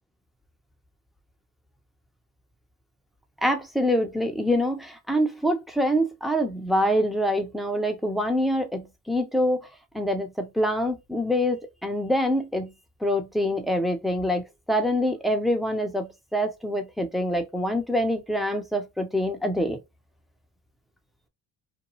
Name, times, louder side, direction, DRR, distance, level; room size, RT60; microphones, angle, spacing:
voice 1, 3.4-9.6 9.9-12.7 13.0-19.8, equal, ahead, 0.7 m, -25 dB
2.6 x 2.2 x 3.0 m
supercardioid pair, 70°, 43 cm